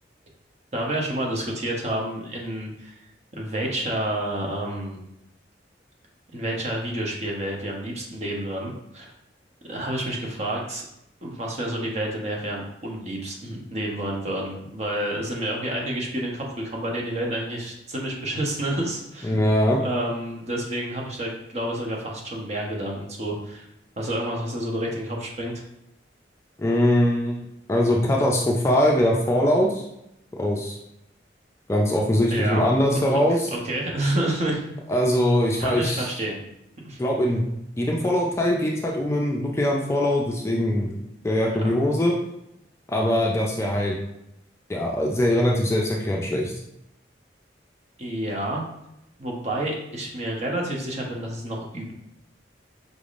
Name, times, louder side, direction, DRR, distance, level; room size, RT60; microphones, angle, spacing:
voice 1, 0.7-2.9 3.3-5.0 6.3-9.1 9.7-10.9 11.2-19.4 19.8-23.6 24.0-25.5 32.3-32.6 32.9-34.6 35.6-36.4 36.8-37.0 41.5-41.7 48.0-48.7 49.2-51.9, right 1 dB, 40° right, -1 dB, 0.8 m, -29 dB
voice 2, 19.2-19.8 26.6-29.8 30.3-30.8 31.7-33.5 34.9-36.1 37.0-37.4 37.8-40.9 41.2-42.1 42.9-44.0 44.7-46.5, left 1 dB, 15° left, -2 dB, 0.4 m, -22 dB
5.1 x 3.4 x 2.5 m, 0.82 s
head